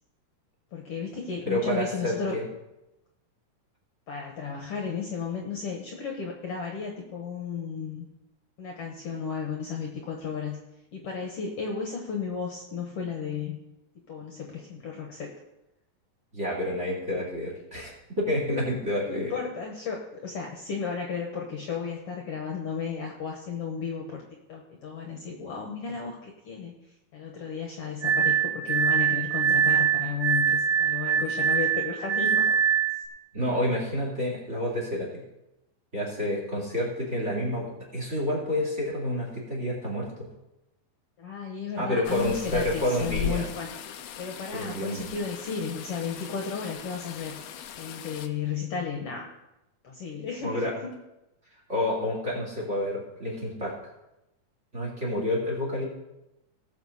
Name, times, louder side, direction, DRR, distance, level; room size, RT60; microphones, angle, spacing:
voice 1, 0.7-2.4 4.1-8.1 8.6-10.6 10.9-13.6 14.1-15.3 19.0-24.2 24.5-26.8 27.1-32.6 41.2-43.8 44.2-47.4 47.7-49.3 49.8-50.7, left 6 dB, 55° left, 0 dB, 1.9 m, -34 dB
voice 2, 1.5-2.4 16.3-19.3 33.3-35.2 35.9-40.1 41.8-43.5 44.5-45.1 50.4-50.7 51.7-53.7 54.7-55.9, left 1 dB, 20° right, -3 dB, 3.0 m, -29 dB
Glass, 28.0-33.0, right 7 dB, 50° right, 0.9 m, -24 dB
sound 1, 42.0-48.3, left 8 dB, 85° left, 1.4 m, -38 dB
18.5 x 7.1 x 4.2 m, 0.92 s
omnidirectional pair, 3.7 m